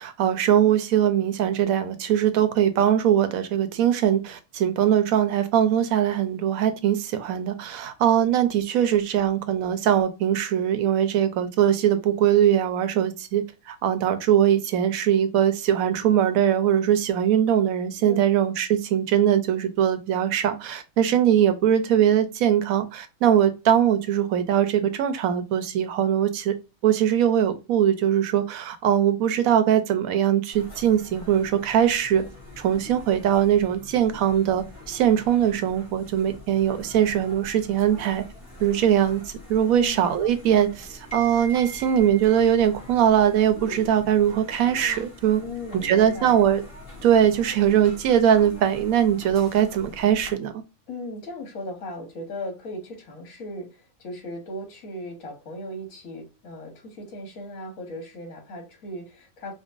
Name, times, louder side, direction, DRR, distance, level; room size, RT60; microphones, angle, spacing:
voice 1, 0.0-26.5 26.8-32.2 32.6-38.2 38.6-39.2 39.5-45.4 45.8-46.6 47.0-50.5, right 10 dB, 90° right, 1.1 m, -21 dB
sound 1, 30.5-50.3, equal, 25° left, 1.5 m, -43 dB
voice 2, 39.7-40.0 45.4-46.4 50.9-59.5, left 1 dB, 75° left, 1.5 m, -37 dB
4.4 x 2.2 x 2.4 m
omnidirectional pair, 1.4 m